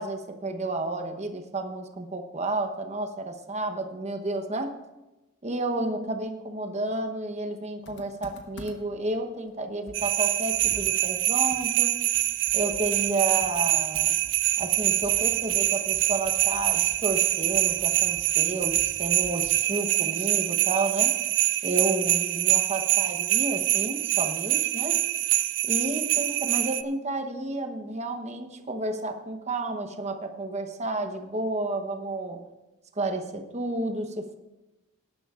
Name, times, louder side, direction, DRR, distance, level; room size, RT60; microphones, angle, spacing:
voice 1, 0.0-4.8 5.4-12.0 12.5-14.1 14.6-21.2 21.6-25.0 25.6-32.5 33.0-34.4, right 2 dB, 30° right, 6 dB, 1.0 m, -31 dB
Computer keyboard, 7.8-9.0 9.5-9.6 9.9-19.7, left 1 dB, 55° left, 1.3 m, -48 dB
sound 1, 9.9-26.8, right 15 dB, 55° right, 0.4 m, -25 dB
19.0 x 11.0 x 2.5 m, 1.0 s
head